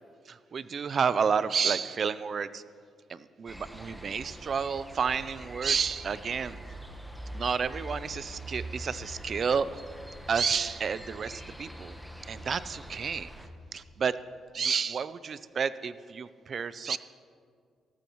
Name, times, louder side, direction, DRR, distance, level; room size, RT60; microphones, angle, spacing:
voice 1, 0.3-2.6 3.1-6.6 7.3-9.7 10.3-11.9 12.3-13.3 13.7-14.1 14.5-17.0, right 6 dB, 50° right, 15 dB, 0.5 m, -30 dB
sound 1, 3.5-13.5, equal, 5° right, 1.1 m, -44 dB
17.5 x 14.0 x 3.1 m, 2.1 s
cardioid pair, 90°, 0 cm